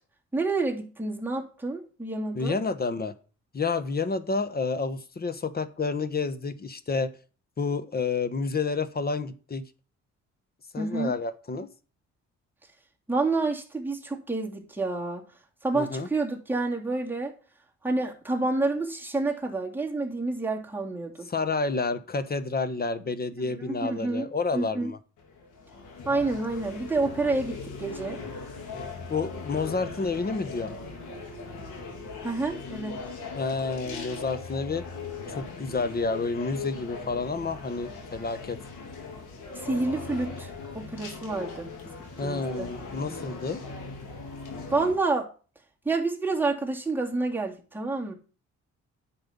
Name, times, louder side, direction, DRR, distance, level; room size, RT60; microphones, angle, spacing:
voice 1, 0.3-2.6 10.8-11.1 13.1-15.2 15.6-17.3 17.8-21.3 23.4-24.3 24.5-24.9 26.0-28.2 32.2-33.0 39.5-41.7 42.2-42.7 44.7-45.3 45.8-48.1, right 3 dB, 5° right, -1 dB, 3.1 m, -29 dB
voice 2, 2.3-3.1 3.5-7.1 7.6-9.6 10.7-11.7 15.7-16.1 21.3-25.0 29.1-30.8 33.3-34.8 35.3-38.6 42.2-43.6, left 4 dB, 30° left, 13 dB, 1.3 m, -29 dB
sound 1, 25.2-44.9, left 4 dB, 90° left, 4.0 m, -39 dB
10.5 x 7.8 x 5.4 m, 0.38 s
cardioid pair, 90°, 30 cm